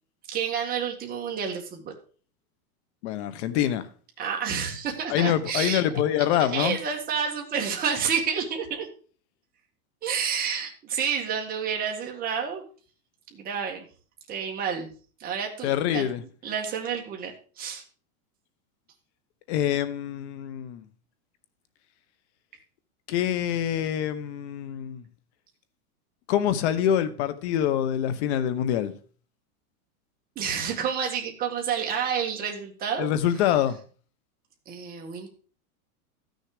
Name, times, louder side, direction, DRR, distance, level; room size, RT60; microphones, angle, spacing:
voice 1, 0.3-1.9 4.2-5.8 6.3-8.9 10.0-12.6 13.3-13.9 14.3-14.9 15.2-16.1 16.4-17.8 30.4-33.1 34.7-35.3, right 7 dB, 20° right, 1.8 m, -29 dB
voice 2, 3.0-3.9 5.1-6.8 15.6-16.2 19.5-20.9 23.1-25.0 26.3-28.9 33.0-33.8, left 10 dB, 50° left, 1.2 m, -25 dB
13.0 x 6.6 x 4.9 m
supercardioid pair, 160°, 44 cm